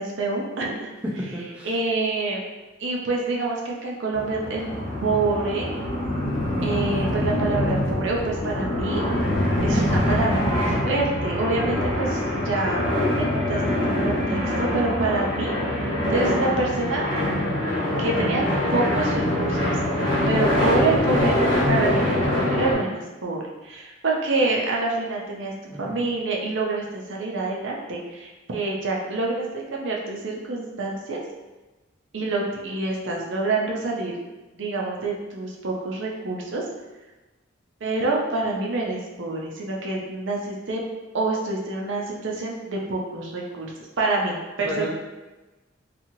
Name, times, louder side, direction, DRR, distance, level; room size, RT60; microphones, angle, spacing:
voice 1, 0.0-0.9 1.6-2.4 2.8-4.7 5.0-5.7 6.6-9.3 9.6-13.6 14.0-17.0 18.0-18.4 18.7-19.7 20.3-25.5 25.8-31.2 32.1-34.1 34.5-36.6 37.8-40.8 41.1-43.7 44.0-44.9, right 3 dB, 70° right, -1 dB, 0.5 m, -27 dB
voice 2, 1.0-1.8 15.9-16.1 25.7-26.0 44.6-44.9, equal, 5° right, -5 dB, 0.4 m, -32 dB
sound 1, 4.1-22.7, left 1 dB, 75° left, 1.1 m, -24 dB
2.9 x 2.4 x 2.7 m, 1.1 s
head